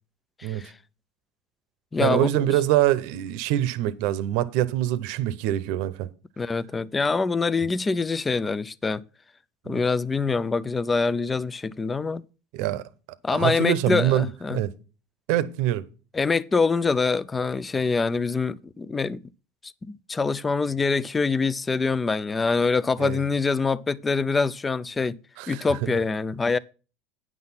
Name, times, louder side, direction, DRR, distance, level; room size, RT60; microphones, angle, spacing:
voice 1, 0.4-0.7 1.9-2.5 6.4-9.0 9.7-12.2 13.2-14.6 16.1-19.2 19.8-25.2 25.5-26.6, left 4 dB, 15° left, 0.4 m, -25 dB
voice 2, 2.0-6.1 9.7-9.8 12.5-12.8 13.3-14.7 15.3-15.9 23.0-23.2 25.4-25.9, right 13 dB, 65° right, 0.8 m, -24 dB
9.4 x 6.1 x 5.6 m
supercardioid pair, 120°, 0 cm